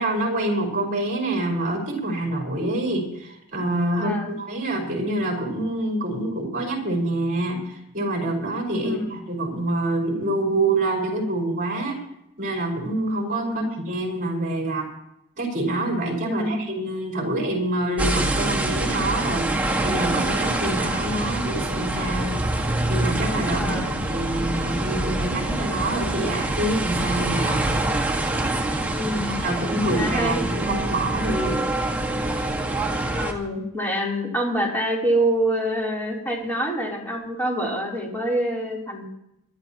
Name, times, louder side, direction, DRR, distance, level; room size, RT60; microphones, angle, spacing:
voice 1, 0.0-12.0 12.4-14.9 15.4-22.4 22.9-23.8 24.1-27.7 29.4-31.6, right 1 dB, 35° right, 0 dB, 4.7 m, -26 dB
voice 2, 4.0-4.3 8.8-9.1 13.4-13.7 16.2-16.6 23.6-24.0 28.9-29.4 29.9-30.4 33.1-39.0, right 1 dB, 10° left, -3 dB, 3.5 m, -26 dB
sound 1, 18.0-33.3, right 1 dB, 5° right, 1.6 m, -25 dB
22.0 x 12.5 x 3.0 m, 0.81 s
head